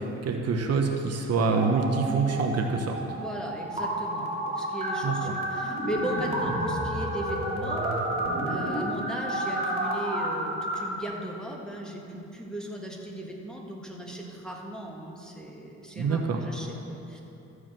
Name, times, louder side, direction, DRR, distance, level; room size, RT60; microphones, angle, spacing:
voice 1, 0.0-3.0 5.0-5.3 16.0-16.4, right 4 dB, 55° right, 2 dB, 1.0 m, -26 dB
sound 1, 1.5-2.5 2.7-10.7, right 1 dB, 20° right, 2.9 m, -30 dB
voice 2, 3.2-7.9 8.4-17.2, right 1 dB, ahead, -1 dB, 1.5 m, -37 dB
13.5 x 4.8 x 7.6 m, 2.9 s
cardioid pair, 90°, 30 cm